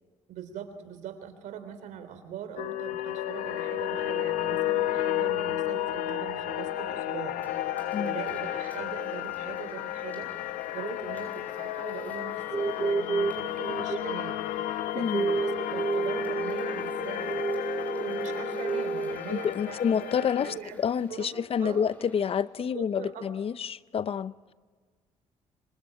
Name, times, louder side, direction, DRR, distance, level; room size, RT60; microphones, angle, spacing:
voice 1, 0.3-7.7 8.0-14.4 14.9-17.4 17.9-20.8 21.1-21.8 22.6-23.3, right 8 dB, 80° right, 8 dB, 3.5 m, -41 dB
sound 1, 2.6-20.6, left 13 dB, 85° left, 1.1 m, -32 dB
sound 2, 7.4-22.4, equal, 15° left, 7.5 m, -54 dB
sound 3, 12.5-19.2, right 4 dB, 25° right, 0.8 m, -31 dB
voice 2, 19.3-24.5, left 7 dB, 50° left, 17 dB, 0.7 m, -28 dB
26.0 x 23.5 x 8.8 m, 1.5 s
cardioid pair, 80°, 13 cm